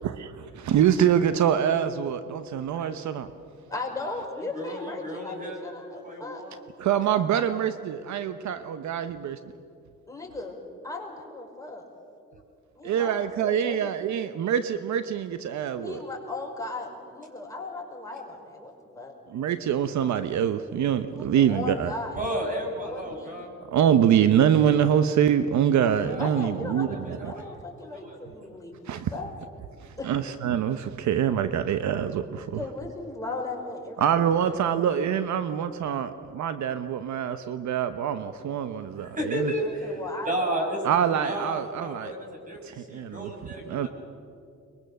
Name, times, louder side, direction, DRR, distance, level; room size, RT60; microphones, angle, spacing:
voice 1, 0.0-3.3 6.8-9.4 12.8-16.0 19.3-21.9 23.7-27.3 28.9-29.1 30.0-32.6 34.0-39.5 40.8-42.1 42.6-43.3 43.7-43.9, right 9 dB, 70° right, 11 dB, 0.9 m, -25 dB
voice 2, 3.7-6.4 7.1-7.6 10.1-10.6 10.8-11.8 12.7-13.9 15.8-19.1 21.1-22.2 22.8-23.4 26.2-29.3 30.0-30.1 32.6-34.1 34.4-34.5 39.6-40.6 41.0-41.1, left 3 dB, 10° left, -1 dB, 5.2 m, -37 dB
voice 3, 4.5-5.6 5.9-6.6 22.1-23.5 25.8-26.5 26.8-28.2 38.9-40.8 41.2-43.9, right 1 dB, 25° right, 1 dB, 5.9 m, -33 dB
23.0 x 22.0 x 6.8 m, 2.5 s
cardioid pair, 90°, 30 cm